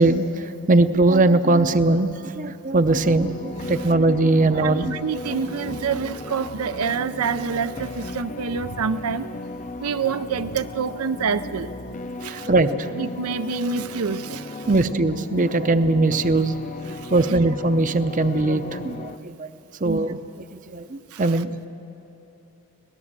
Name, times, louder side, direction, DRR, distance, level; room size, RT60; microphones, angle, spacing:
voice 1, 0.0-4.9 12.2-13.0 14.6-16.6 17.1-19.5 19.8-20.2 20.7-21.7, right 2 dB, 35° right, 10 dB, 0.6 m, -20 dB
sound 1, 2.8-19.2, left 2 dB, 35° left, 0.6 m, -35 dB
voice 2, 4.6-9.3 9.8-11.7 12.2-12.5 13.0-14.7 16.9-17.4 19.8-20.1 21.1-21.4, right 6 dB, 85° right, 11 dB, 0.5 m, -27 dB
24.0 x 18.5 x 7.4 m, 2.9 s
head